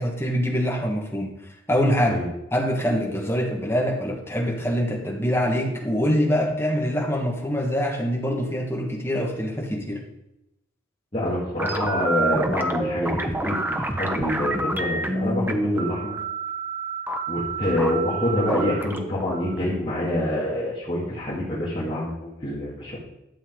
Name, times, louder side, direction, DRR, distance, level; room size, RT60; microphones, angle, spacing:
voice 1, 0.0-1.3 1.7-2.2 2.5-10.0, equal, 10° left, -2 dB, 1.7 m, -24 dB
voice 2, 11.1-16.1 17.3-23.0, left 1 dB, 30° left, -10 dB, 2.5 m, -26 dB
sound 1, 11.6-20.5, right 2 dB, 10° right, 0.6 m, -28 dB
12.0 x 7.3 x 3.9 m, 0.87 s
head